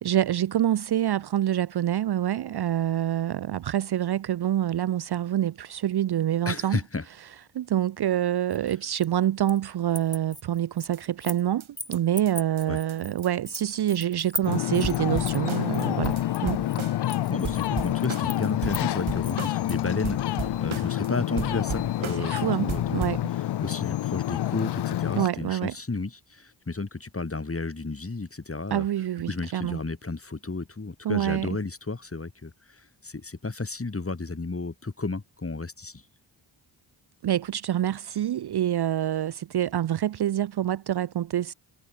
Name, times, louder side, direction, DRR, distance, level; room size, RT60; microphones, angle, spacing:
voice 1, 0.0-6.8 7.5-16.7 22.2-23.2 25.2-25.7 28.7-29.8 31.0-31.5 37.2-41.5, right 11 dB, 55° right, 0.6 m, -26 dB
voice 2, 6.4-7.1 12.7-12.8 17.3-23.2 23.6-28.8 29.3-36.0, left 3 dB, 30° left, 2.7 m, -32 dB
sound 1, 8.5-9.6 9.9-11.5 11.8-19.8, left 1 dB, 10° left, 1.3 m, -39 dB
sound 2, 10.9-11.0 11.3-11.4 11.6-11.7 11.9-12.0 12.3-12.4 12.6-12.7 12.9-13.0 13.2-13.3 13.6-13.7 13.9-14.3 14.5-14.6 14.8-17.2 17.4-19.8 20.0-21.1 21.4-22.4 22.7-23.2, right 7 dB, 75° right, 4.5 m, -36 dB
Ocean, 14.4-25.3, left 13 dB, 55° left, 0.5 m, -28 dB
cardioid pair, 50°, 48 cm